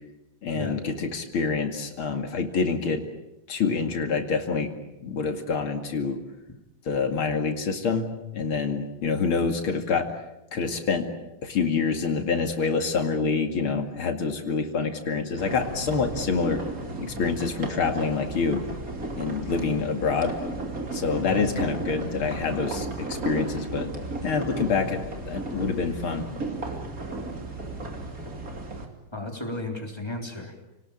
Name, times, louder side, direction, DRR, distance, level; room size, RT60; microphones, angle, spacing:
voice 1, 0.4-3.0 3.5-4.7 5.0-6.2 6.9-8.1 8.3-10.1 10.5-11.1 11.4-16.6 17.0-18.6 19.2-20.3 20.9-23.9 24.2-26.3, left 5 dB, 85° left, 5 dB, 3.1 m, -26 dB
sound 1, 15.4-28.9, right 2 dB, 40° right, 3.3 m, -34 dB
voice 2, 29.1-30.6, left 2 dB, 10° left, 2 dB, 3.7 m, -33 dB
29.5 x 19.5 x 8.8 m, 0.97 s
omnidirectional pair, 2.3 m